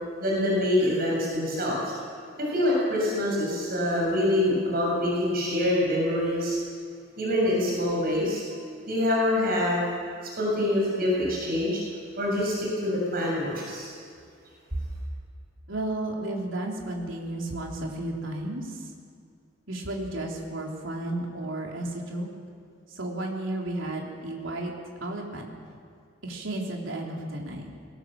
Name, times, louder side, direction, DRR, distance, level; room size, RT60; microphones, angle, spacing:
voice 1, 0.2-1.9 2.4-6.6 7.2-8.4 8.9-9.9 10.4-11.8 12.2-13.9, left 1 dB, 50° right, -3 dB, 6.8 m, -25 dB
voice 2, 15.7-18.9 19.7-22.3 22.9-25.5 26.2-27.7, right 1 dB, 80° right, 0 dB, 3.6 m, -33 dB
21.5 x 19.5 x 7.6 m, 2.3 s
head